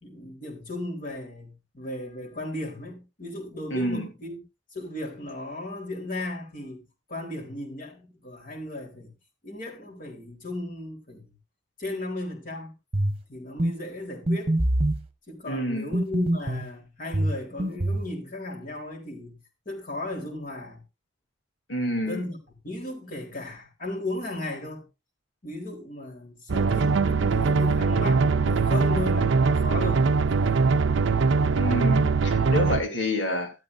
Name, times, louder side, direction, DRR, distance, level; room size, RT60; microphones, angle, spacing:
voice 1, 0.0-4.4 4.7-6.8 7.1-9.1 9.4-11.3 11.8-12.7 13.3-14.6 15.3-19.4 19.7-20.8 22.0-22.4 22.6-24.8 25.4-30.0, left 1 dB, 45° left, 3.9 m, -35 dB
voice 2, 3.7-4.1 15.5-15.9 21.7-22.2 31.5-33.5, left 1 dB, 80° left, 3.4 m, -28 dB
sound 1, 12.9-13.2 13.6-13.8 14.3-15.0 15.9-16.7 17.1-18.1, right 1 dB, 30° right, 1.1 m, -24 dB
sound 2, 26.5-32.8, right 4 dB, 80° right, 0.5 m, -22 dB
13.5 x 12.5 x 2.6 m
head